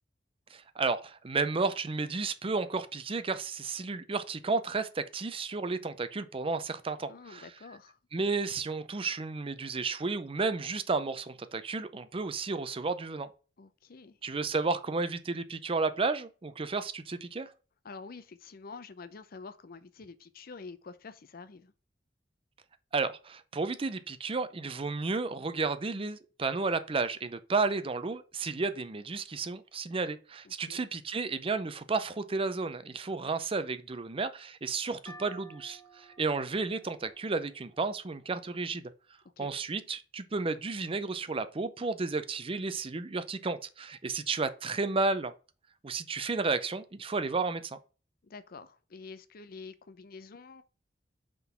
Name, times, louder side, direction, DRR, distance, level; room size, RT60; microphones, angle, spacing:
voice 1, 0.5-7.4 8.1-13.3 14.2-17.5 22.9-38.8 39.4-45.3 45.8-47.8, right 4 dB, 30° right, 0.5 m, -32 dB
voice 2, 7.1-8.0 13.6-14.2 17.8-21.7 30.4-30.9 38.7-38.8 39.4-39.5 48.2-50.6, left 4 dB, 55° left, 0.6 m, -47 dB
sound 1, 35.0-38.6, right 1 dB, 20° left, 1.5 m, -54 dB
5.9 x 3.8 x 5.7 m
head